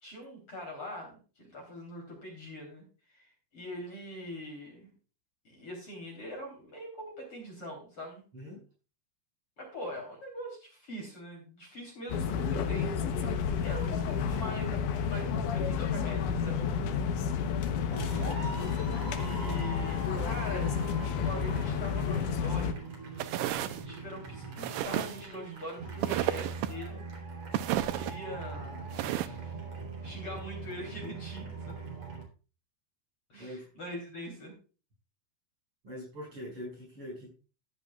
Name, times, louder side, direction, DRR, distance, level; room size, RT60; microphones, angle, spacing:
voice 1, 0.0-4.9 5.4-8.2 9.6-16.7 19.1-20.7 21.2-22.8 23.6-27.0 27.9-29.6 30.0-31.8 33.3-34.5, left 1 dB, 35° left, 0 dB, 4.0 m, -43 dB
voice 2, 8.3-8.6 33.4-33.6 35.8-37.3, equal, 35° right, -3 dB, 6.2 m, -42 dB
sound 1, 12.1-22.7, left 6 dB, 70° left, 2.2 m, -31 dB
sound 2, 17.9-32.2, right 3 dB, 50° right, 4.5 m, -41 dB
sound 3, 23.2-23.8 24.6-25.2 26.0-26.7 27.5-28.1 28.9-29.3, right 13 dB, 80° right, 1.9 m, -31 dB
14.5 x 10.5 x 2.3 m, 0.35 s
omnidirectional pair, 4.3 m